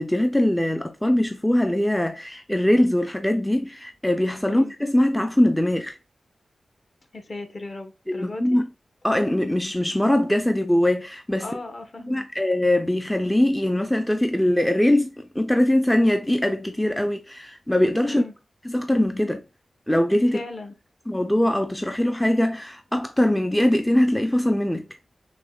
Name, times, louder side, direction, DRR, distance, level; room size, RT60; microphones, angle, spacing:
voice 1, 0.0-6.0 8.1-8.7 9.0-11.5 12.1-18.2 18.6-19.4 19.9-20.4 21.1-24.8, left 1 dB, 5° left, 0.4 m, -22 dB
voice 2, 7.1-8.6 11.4-12.3 18.0-18.3 20.3-20.7, left 2 dB, 45° left, 0.8 m, -37 dB
5.8 x 2.1 x 2.2 m
wide cardioid pair, 85°, 0 cm